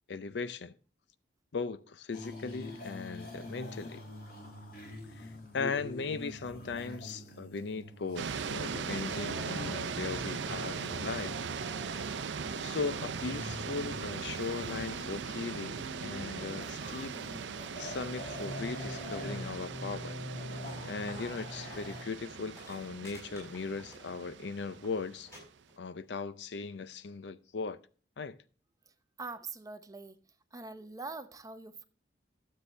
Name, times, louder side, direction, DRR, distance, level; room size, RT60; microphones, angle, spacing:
voice 1, 0.1-0.7 1.5-4.0 5.1-11.4 12.6-17.2 17.8-20.2 20.8-25.3 25.8-27.8 28.2-28.4, left 4 dB, 70° left, 0.5 m, -38 dB
sound 1, 2.1-22.0, left 1 dB, 55° left, 2.2 m, -44 dB
sound 2, 8.2-25.5, right 6 dB, 80° right, 0.5 m, -39 dB
sound 3, 22.2-22.3 22.5-24.4 24.7-24.9 25.3-25.4 25.7-26.2 27.0-27.1, left 1 dB, 15° left, 5.9 m, -53 dB
voice 2, 29.2-30.2 30.5-31.8, right 3 dB, 20° right, 0.7 m, -43 dB
12.5 x 7.6 x 3.2 m
head